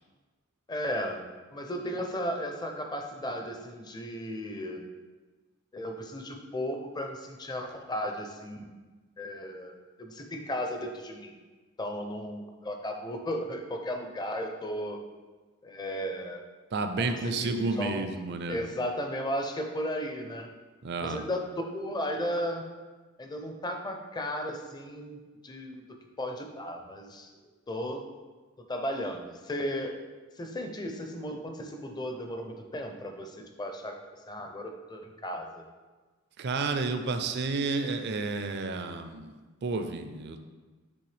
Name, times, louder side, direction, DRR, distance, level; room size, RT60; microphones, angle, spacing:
voice 1, 0.7-4.8 5.7-8.8 9.2-11.3 11.8-15.0 15.6-16.4 17.0-18.1 18.5-20.5 21.0-22.7 23.2-25.2 25.4-25.8 26.2-28.0 28.7-30.0 30.4-35.7, equal, 20° left, 4 dB, 0.5 m, -35 dB
voice 2, 16.7-18.6 20.8-21.2 36.4-39.3 39.6-40.4, right 3 dB, 50° right, 8 dB, 0.4 m, -31 dB
8.5 x 3.4 x 3.3 m, 1.3 s
head